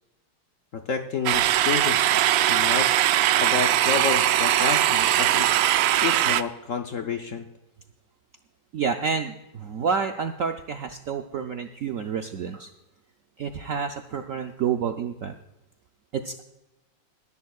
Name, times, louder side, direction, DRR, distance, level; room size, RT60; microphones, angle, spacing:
voice 1, 0.7-3.1 3.4-5.5 6.0-7.5, left 5 dB, 60° left, 4 dB, 0.9 m, -30 dB
sound 1, 1.3-6.4, right 12 dB, 85° right, 1.3 m, -21 dB
voice 2, 8.7-12.7 13.4-15.4 16.1-16.4, right 6 dB, 70° right, 5 dB, 0.8 m, -29 dB
21.0 x 11.0 x 2.4 m, 0.95 s
omnidirectional pair, 2.0 m